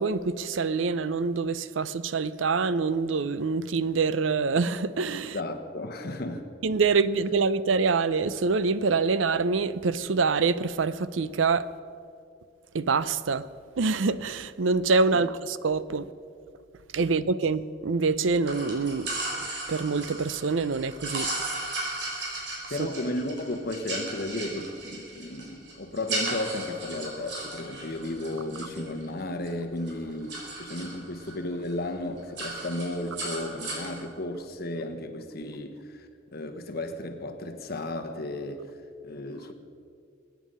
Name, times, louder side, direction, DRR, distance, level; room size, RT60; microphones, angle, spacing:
voice 1, 0.0-5.4 6.6-11.7 12.7-13.4 13.8-16.1 16.9-19.1 19.7-21.3, right 4 dB, 85° right, 0.5 m, -25 dB
voice 2, 5.3-6.5 15.1-15.3 22.7-38.8 39.0-39.5, left 1 dB, 55° left, 1.3 m, -34 dB
sound 1, 18.4-29.5 29.8-31.3 31.7-31.9 32.2-34.0, right 2 dB, 65° right, 4.5 m, -36 dB
23.5 x 9.3 x 5.5 m
head